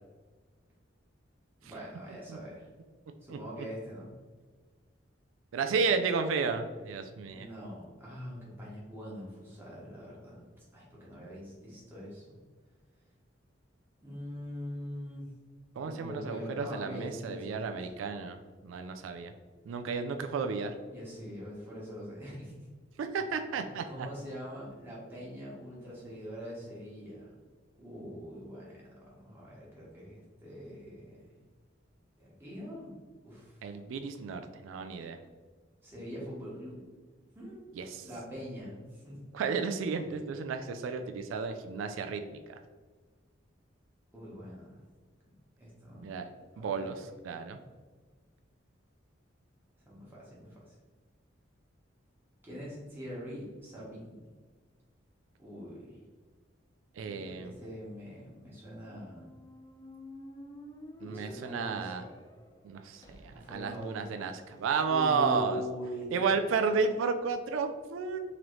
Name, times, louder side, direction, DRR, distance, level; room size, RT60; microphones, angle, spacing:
voice 1, 1.6-2.7 3.2-4.1 7.3-10.4 10.7-12.4 14.0-15.3 15.8-18.0 20.9-22.6 23.8-27.3 27.8-31.2 32.2-32.9 33.2-33.7 35.8-36.8 37.3-37.7 38.0-39.2 44.1-44.8 45.6-46.1 46.6-46.9 49.9-50.6 52.4-54.3 55.4-56.0 57.0-59.3 61.0-61.9 63.3-64.0 64.9-66.7, equal, 10° right, -7 dB, 1.3 m, -43 dB
voice 2, 3.3-3.7 5.5-7.5 15.8-19.3 19.7-20.7 23.0-24.1 33.6-35.2 37.7-38.1 39.3-42.6 46.0-46.3 46.6-47.6 57.0-57.5 61.0-62.0 62.6-65.6 66.1-68.2, right 5 dB, 90° right, 7 dB, 0.3 m, -32 dB
Squeak, 58.7-64.7, left 1 dB, 20° left, 0.3 m, -51 dB
3.8 x 3.0 x 3.1 m, 1.4 s
head